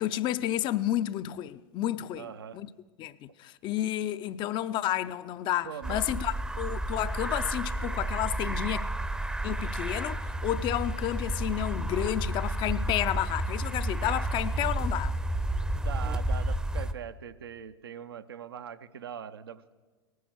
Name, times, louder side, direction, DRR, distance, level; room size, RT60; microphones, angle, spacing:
voice 1, 0.0-2.7 3.0-8.9 9.4-15.1, left 13 dB, 40° left, 0.5 m, -31 dB
voice 2, 2.2-2.6 5.6-6.0 15.8-19.7, right 8 dB, 75° right, 0.6 m, -41 dB
sound 1, 5.8-16.9, right 1 dB, 5° right, 0.6 m, -31 dB
18.5 x 9.4 x 6.3 m
figure-of-eight pair, 85°, 13 cm